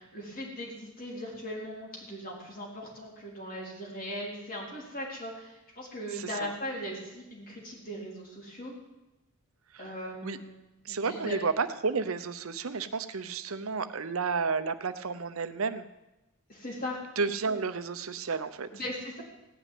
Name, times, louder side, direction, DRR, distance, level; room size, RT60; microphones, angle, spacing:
voice 1, 0.0-8.7 9.8-10.5 10.9-11.4 16.5-17.0 18.7-19.2, equal, 45° left, -3 dB, 4.1 m, -39 dB
voice 2, 6.1-6.5 9.7-9.9 10.2-10.4 10.8-15.8 17.2-18.7, right 4 dB, 75° right, 11 dB, 0.8 m, -31 dB
16.5 x 6.1 x 9.4 m, 0.99 s
head